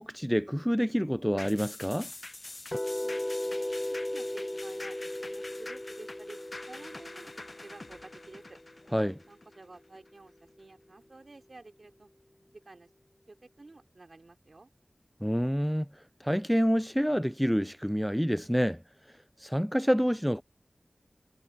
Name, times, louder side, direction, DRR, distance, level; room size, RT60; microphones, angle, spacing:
voice 1, 0.0-2.1 8.9-9.2 15.2-15.9 16.2-18.8 19.4-20.4, equal, ahead, 0.4 m, -27 dB
sound 1, 1.4-10.1 10.5-10.6, left 2 dB, 50° left, 0.7 m, -46 dB
sound 2, 2.7-8.8, left 1 dB, 25° left, 1.3 m, -37 dB
voice 2, 3.0-6.4 6.7-8.6 9.3-12.1 12.5-12.9 13.3-14.7, right 2 dB, 60° right, 3.1 m, -51 dB
wide cardioid pair, 50°, 0 cm